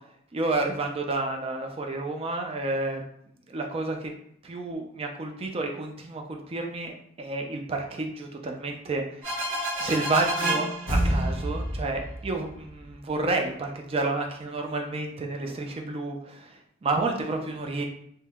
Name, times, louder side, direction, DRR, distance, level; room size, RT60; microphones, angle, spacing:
voice 1, 0.3-3.0 3.5-4.1 4.4-9.5 9.8-17.8, right 2 dB, 30° right, 3 dB, 0.4 m, -30 dB
sound 1, 9.2-12.9, right 1 dB, 80° right, 1.1 m, -28 dB
2.8 x 2.1 x 3.4 m, 0.69 s
head